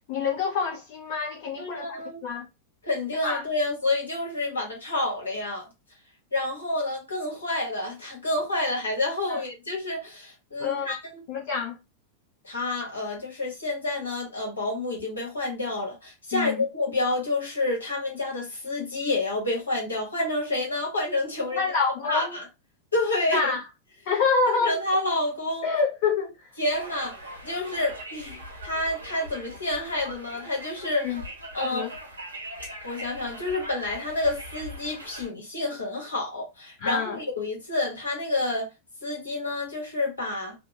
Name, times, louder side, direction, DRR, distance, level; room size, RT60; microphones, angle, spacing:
voice 1, 0.1-1.9 2.2-2.4 3.2-3.4 9.3-9.4 10.6-11.0 11.3-11.8 16.3-16.6 21.6-22.4 23.3-23.6 24.1-24.8 25.6-26.4 31.0-31.2 31.6-31.9 36.8-37.2, left 5 dB, 50° left, 0.8 m, -26 dB
voice 2, 1.6-2.2 2.8-5.7 6.3-11.2 12.4-21.6 22.1-22.4 22.9-23.5 24.6-25.7 26.6-27.2 27.4-31.1 31.5-31.8 32.8-38.7 39.0-40.5, left 2 dB, 75° left, 1.1 m, -29 dB
Conversation, 26.7-35.3, equal, 75° right, 0.8 m, -41 dB
2.7 x 2.0 x 2.5 m
figure-of-eight pair, 90°, 0 cm